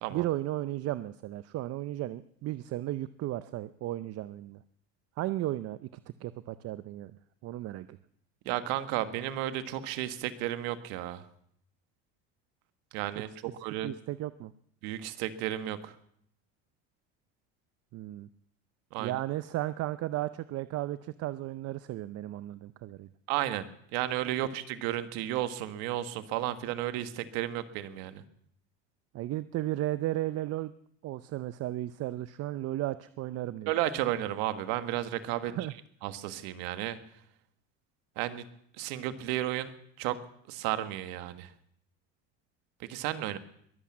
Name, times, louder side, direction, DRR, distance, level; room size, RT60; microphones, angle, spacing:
voice 1, 0.1-4.6 5.2-5.9 6.2-7.1 7.4-8.0 13.2-13.3 13.8-14.5 17.9-18.3 19.0-23.1 29.1-30.7 31.0-33.7 35.4-35.7, right 15 dB, 45° right, 14 dB, 0.6 m, -34 dB
voice 2, 8.4-11.2 12.9-13.3 13.6-13.9 14.8-15.9 18.9-19.2 23.3-23.7 23.9-28.2 33.7-35.5 36.0-37.0 38.2-38.4 38.8-39.7 40.0-40.2 40.5-41.5 42.8-43.4, right 13 dB, 75° right, 11 dB, 1.5 m, -33 dB
21.5 x 8.5 x 7.4 m, 0.69 s
supercardioid pair, 105°, 33 cm